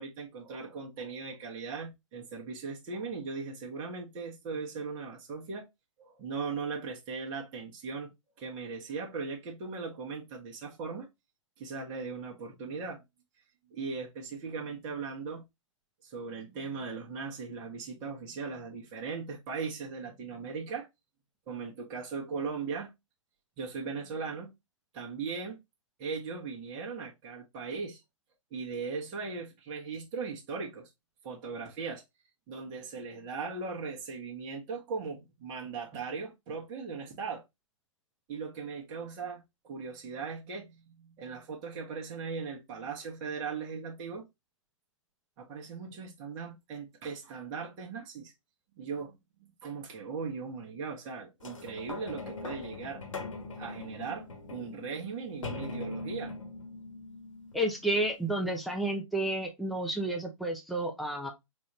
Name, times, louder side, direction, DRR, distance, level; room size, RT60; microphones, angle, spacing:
voice 1, 0.0-5.7 6.0-11.1 11.6-13.0 13.7-15.4 16.0-20.9 21.5-22.9 23.6-24.5 24.9-25.6 26.0-28.0 28.5-30.9 31.2-32.0 32.5-37.4 38.3-44.3 45.4-48.3 48.7-53.0 53.5-56.3, right 5 dB, 25° right, 1.1 m, -38 dB
Sounds For Earthquakes - Radiator Metal Rumbling, 51.4-58.2 58.8-58.9, left 3 dB, 75° left, 1.3 m, -41 dB
voice 2, 57.5-61.3, right 1 dB, ahead, 0.6 m, -31 dB
4.0 x 2.6 x 3.0 m
hypercardioid pair, 135°, 17 cm